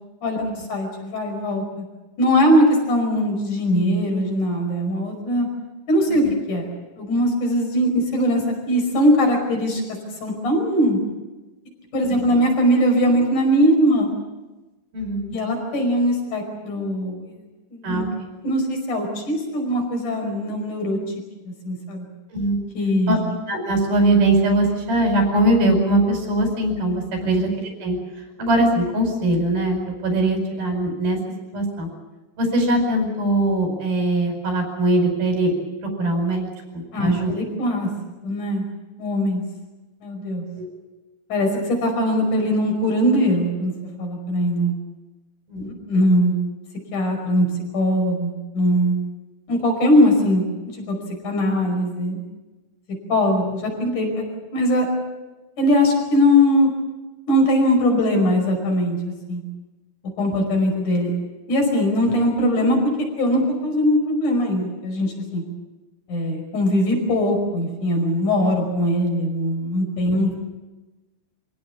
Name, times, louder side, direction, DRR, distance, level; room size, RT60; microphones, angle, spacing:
voice 1, 0.7-1.8 2.2-5.5 5.9-6.7 7.0-9.8 10.2-11.0 11.9-14.1 15.3-17.3 17.7-18.1 18.4-21.0 21.6-22.0 22.7-23.2 27.2-27.4 36.9-37.9 38.2-38.7 39.0-39.4 40.0-40.5 41.3-43.7 44.0-44.8 45.5-46.3 46.9-47.5 47.7-49.0 49.5-50.5 50.7-51.0 51.2-52.2 53.1-54.2 54.5-54.9 55.6-56.7 57.3-59.0 59.3-59.4 60.2-61.1 61.5-62.8 63.2-65.4 66.1-70.4, equal, 55° left, 3 dB, 6.7 m, -20 dB
voice 2, 14.9-15.3 17.8-18.1 22.3-22.6 23.1-23.2 23.5-28.0 28.4-31.2 31.5-31.9 32.4-35.5 36.0-37.4 40.6-40.7 45.5-45.7 69.9-70.0, right 1 dB, 75° right, 3 dB, 7.2 m, -21 dB
26.5 x 17.0 x 8.5 m, 1.1 s
omnidirectional pair, 4.4 m